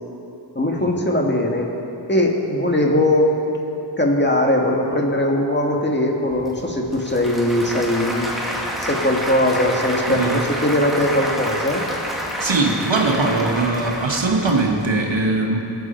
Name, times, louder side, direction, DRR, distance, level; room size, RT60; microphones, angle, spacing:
voice 1, 0.6-1.7 2.1-3.4 4.0-8.4 8.8-11.8, left 1 dB, 25° left, 0 dB, 1.8 m, -20 dB
Applause / Crowd, 6.3-15.1, equal, ahead, 1.9 m, -28 dB
voice 2, 12.4-15.6, right 3 dB, 80° right, 0 dB, 1.6 m, -20 dB
20.5 x 8.1 x 4.4 m, 3.0 s
wide cardioid pair, 40°, 45 cm